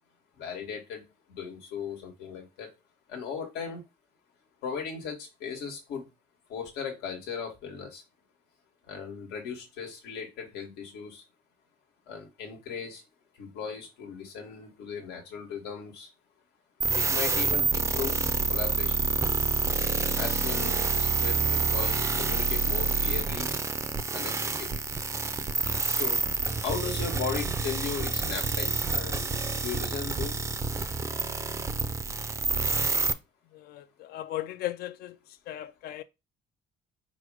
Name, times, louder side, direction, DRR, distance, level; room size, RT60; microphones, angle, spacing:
voice 1, 0.4-1.0 1.3-2.7 3.1-3.8 4.6-6.1 6.5-8.0 8.9-11.2 12.1-13.0 13.4-16.1 16.9-18.2 18.5-19.1 20.2-23.5 24.1-24.8 25.9-26.2 26.6-30.5, left 6 dB, 90° left, 1.3 m, -37 dB
sound 1, 16.8-33.1, right 4 dB, 15° right, 0.4 m, -28 dB
voice 2, 33.5-35.2 35.5-36.0, left 14 dB, 70° left, 0.5 m, -36 dB
4.7 x 2.1 x 4.7 m
cardioid pair, 110°, 17 cm